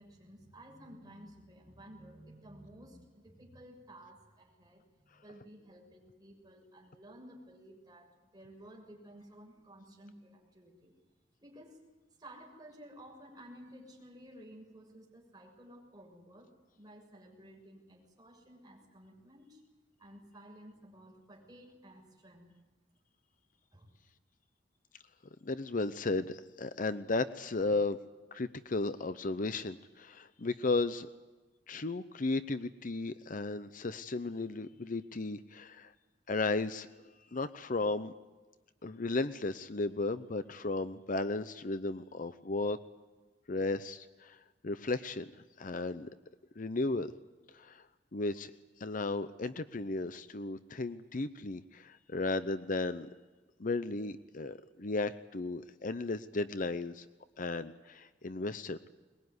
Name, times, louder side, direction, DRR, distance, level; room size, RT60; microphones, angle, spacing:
voice 1, 0.0-10.9 11.4-11.8 12.2-16.5 16.8-19.6 20.0-22.6 23.7-23.9, right 1 dB, 20° right, -1 dB, 6.8 m, -54 dB
voice 2, 25.4-28.0 28.3-31.1 31.7-35.9 36.3-36.9 37.3-38.1 38.8-42.8 43.5-46.1 46.6-47.1 47.5-48.5 48.8-53.1 53.6-57.1 57.4-58.9, left 3 dB, 45° left, 12 dB, 0.7 m, -35 dB
22.5 x 21.5 x 9.6 m, 1.2 s
head